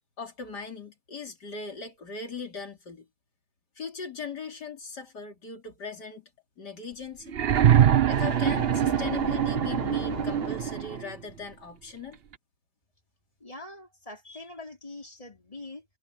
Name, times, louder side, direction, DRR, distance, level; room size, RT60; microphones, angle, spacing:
voice 1, 0.2-3.1 3.8-6.3 6.6-7.3 8.1-12.2, left 4 dB, 80° left, 3.8 m, -39 dB
sound 1, 7.3-11.1 12.3-12.4, right 10 dB, 50° right, 0.7 m, -23 dB
sound 2, 7.9-10.7, left 10 dB, 60° left, 1.1 m, -39 dB
voice 2, 13.4-15.8, left 2 dB, 20° left, 5.1 m, -43 dB
omnidirectional pair, 1.8 m